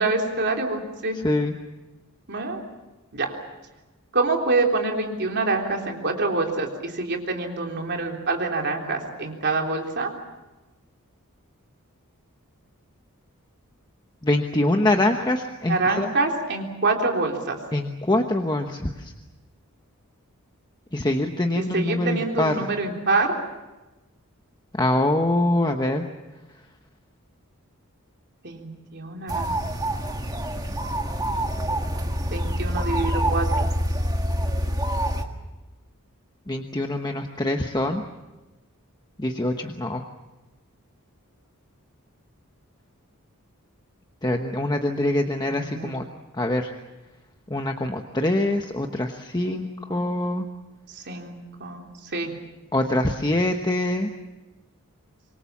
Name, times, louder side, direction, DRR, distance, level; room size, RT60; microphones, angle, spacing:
voice 1, 0.0-1.2 2.3-2.6 3.1-3.3 4.1-10.1 15.7-17.6 21.6-23.3 28.4-29.5 32.3-33.7 45.4-45.9 49.4-50.0 50.9-51.8 52.1-52.3, right 3 dB, 50° right, 2 dB, 3.6 m, -26 dB
voice 2, 14.2-16.1 17.7-18.9 20.9-22.5 24.8-26.0 36.5-38.0 39.2-40.0 44.2-46.0 46.4-46.7 47.5-50.4 52.7-54.1, left 1 dB, 20° left, 4 dB, 1.1 m, -24 dB
sound 1, 29.3-35.2, equal, 15° right, 1.7 m, -26 dB
26.0 x 23.0 x 7.3 m, 1.1 s
head